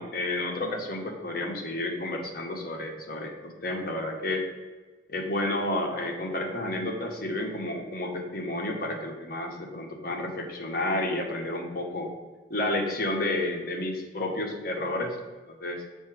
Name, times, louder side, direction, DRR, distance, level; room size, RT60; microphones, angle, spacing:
voice 1, 0.0-4.4 5.1-12.1 12.5-15.2 15.5-15.8, left 1 dB, 50° left, 1 dB, 1.1 m, -31 dB
7.2 x 2.7 x 5.8 m, 1.3 s
head